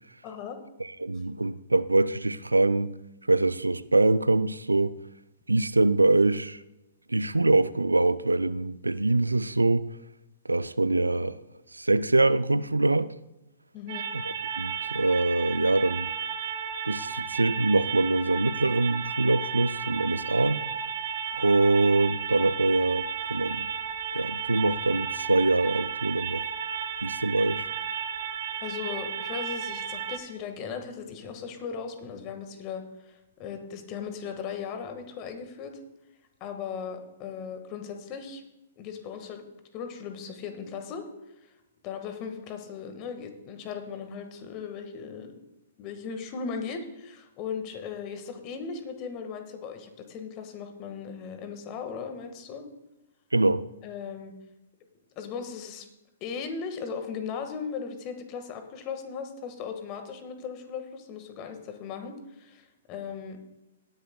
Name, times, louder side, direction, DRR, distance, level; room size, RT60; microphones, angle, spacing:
voice 1, 0.2-0.6 13.7-14.1 28.6-35.8 36.4-38.4 38.8-39.5 39.7-41.0 41.4-41.5 41.8-45.3 45.8-52.6 53.8-54.3 55.1-55.9 56.2-63.4, left 6 dB, 35° left, 1.7 m, -37 dB
voice 2, 1.0-2.9 3.3-5.0 5.5-6.6 7.1-9.9 10.5-11.4 11.7-13.1 14.1-14.2 14.6-16.1 16.9-20.6 21.3-23.7 24.1-26.4 27.0-27.7 53.3-53.6, right 2 dB, 90° right, 0.4 m, -24 dB
sound 1, 13.9-30.2, right 7 dB, 50° right, 1.4 m, -33 dB
18.5 x 10.0 x 2.3 m
figure-of-eight pair, 115°, 0 cm